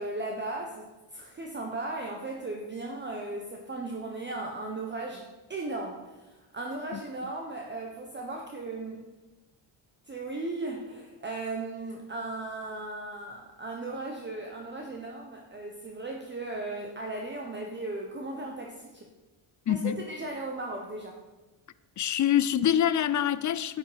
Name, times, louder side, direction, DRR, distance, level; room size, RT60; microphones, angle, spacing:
voice 1, 0.0-9.1 10.1-19.1 19.7-21.2, right 2 dB, 20° right, 1 dB, 1.1 m, -37 dB
voice 2, 19.7-20.0 22.0-23.8, left 10 dB, 40° left, 16 dB, 0.5 m, -25 dB
11.0 x 8.5 x 5.1 m, 1.1 s
cardioid pair, 125°, 50 cm